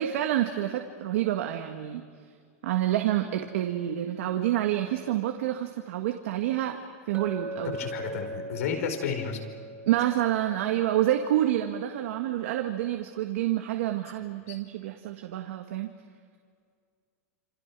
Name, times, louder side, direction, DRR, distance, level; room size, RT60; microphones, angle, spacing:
voice 1, 0.0-2.0 2.6-6.8 7.1-7.8 9.9-15.9, right 12 dB, 65° right, 4 dB, 1.7 m, -28 dB
Chink clink, 7.1-11.3, right 1 dB, 20° right, 3.1 m, -40 dB
voice 2, 7.6-9.4 14.5-14.6, left 7 dB, 75° left, 5 dB, 5.1 m, -32 dB
28.0 x 27.5 x 6.1 m, 2.1 s
supercardioid pair, 170°, 8 cm